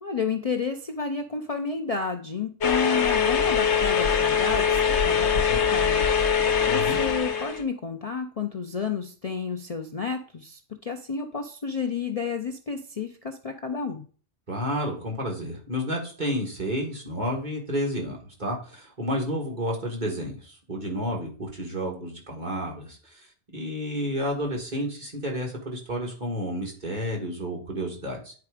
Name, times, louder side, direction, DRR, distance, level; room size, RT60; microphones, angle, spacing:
voice 1, 0.0-6.1 6.3-14.0, left 5 dB, 35° left, 4 dB, 0.7 m, -31 dB
sound 1, 2.6-7.6, left 6 dB, 75° left, 1.2 m, -22 dB
voice 2, 6.7-7.0 14.5-28.3, equal, 40° right, 0 dB, 2.0 m, -31 dB
9.6 x 4.8 x 4.9 m, 0.40 s
omnidirectional pair, 1.2 m